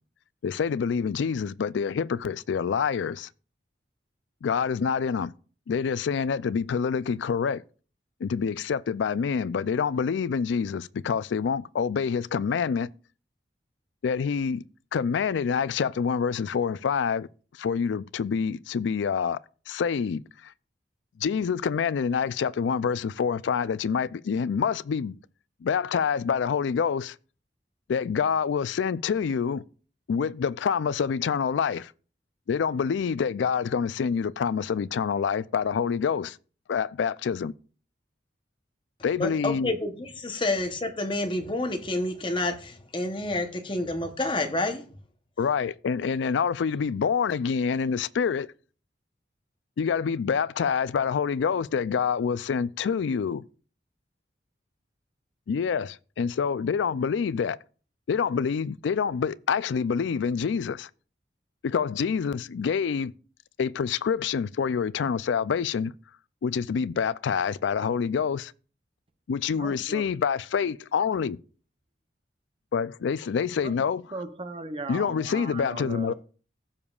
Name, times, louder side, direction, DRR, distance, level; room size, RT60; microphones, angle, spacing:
voice 1, 0.4-3.3 4.4-5.3 5.7-7.6 8.2-12.9 14.0-14.6 14.9-17.3 17.6-19.4 19.7-20.5 21.2-25.2 25.6-27.2 27.9-29.6 30.1-31.9 32.5-36.4 36.7-37.5 39.0-39.7 45.4-48.5 49.8-53.4 55.5-57.6 58.1-60.9 61.6-63.1 63.6-65.9 66.4-68.5 69.3-71.4 72.7-74.0 74.9-76.1, left 6 dB, 75° left, 0.3 m, -27 dB
voice 2, 39.2-44.8, left 2 dB, 25° left, 0.9 m, -29 dB
voice 3, 69.6-70.1 73.6-73.8 74.1-76.1, right 2 dB, 30° right, 0.7 m, -37 dB
15.5 x 7.0 x 2.4 m
head